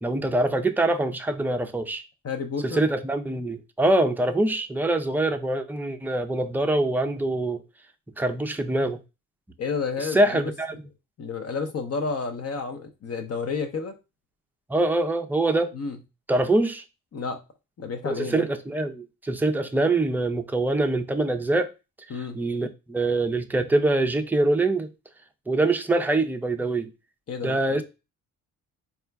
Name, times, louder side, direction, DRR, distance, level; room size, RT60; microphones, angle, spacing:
voice 1, 0.0-2.0 2.7-7.6 8.2-9.0 10.1-10.8 14.7-15.7 16.3-16.8 18.1-21.7 22.4-24.9 25.5-26.9 27.4-27.8, right 2 dB, 5° right, 0.4 m, -24 dB
voice 2, 2.2-2.8 9.6-10.5 11.2-14.0 15.7-16.0 17.1-17.4 17.8-18.5 22.1-22.4 27.3-27.8, left 4 dB, 45° left, 0.7 m, -31 dB
4.2 x 2.4 x 3.4 m
cardioid pair, 90°, 35 cm